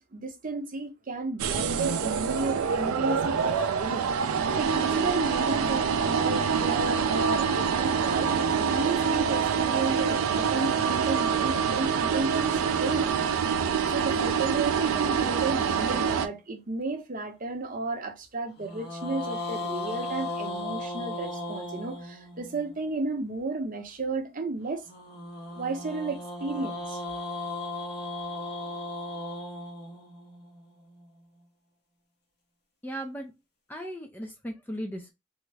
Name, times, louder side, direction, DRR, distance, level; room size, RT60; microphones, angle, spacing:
voice 1, 0.1-13.1 13.8-24.8 25.6-27.0, right 3 dB, 40° right, 0.7 m, -33 dB
sound 1, 1.4-16.3, right 6 dB, 85° right, 0.4 m, -26 dB
sound 2, 13.9-16.3 18.6-22.7 24.9-31.1, left 2 dB, 50° left, 1.0 m, -37 dB
voice 2, 32.8-33.3 33.7-35.1, equal, 10° left, 0.3 m, -36 dB
3.5 x 2.1 x 3.2 m
head